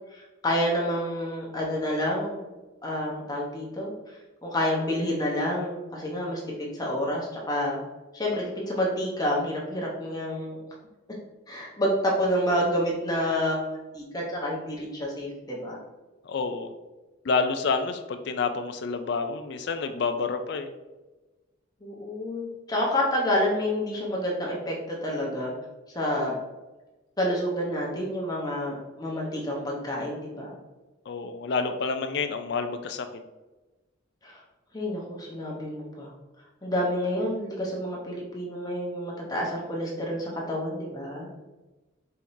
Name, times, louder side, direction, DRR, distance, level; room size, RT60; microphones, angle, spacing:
voice 1, 0.1-2.4 2.8-7.8 8.1-10.6 11.5-15.8 21.8-25.5 25.9-26.3 27.2-30.5 34.2-34.4 34.7-36.1 36.6-41.3, equal, 20° left, -3 dB, 0.9 m, -29 dB
voice 2, 16.2-16.7 17.2-20.7 31.1-33.1, left 4 dB, 55° left, 7 dB, 0.4 m, -28 dB
4.4 x 3.5 x 2.6 m, 1.1 s
head